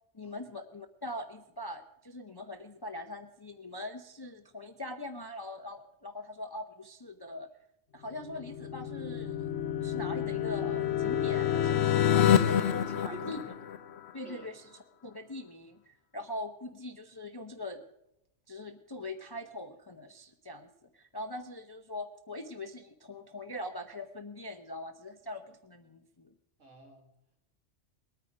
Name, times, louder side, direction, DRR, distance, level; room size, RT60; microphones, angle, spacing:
voice 1, 0.1-7.5 7.9-9.5 9.8-12.6 13.0-13.4 14.1-14.7 15.0-17.8 18.5-20.7 20.9-26.3, left 1 dB, 25° left, 7 dB, 0.5 m, -42 dB
sound 1, 8.2-14.1, left 10 dB, 60° left, 0.9 m, -28 dB
voice 2, 12.2-13.6 14.2-14.5 26.6-27.1, right 2 dB, 65° right, 2 dB, 2.5 m, -45 dB
20.5 x 9.1 x 5.0 m, 0.83 s
omnidirectional pair, 1.4 m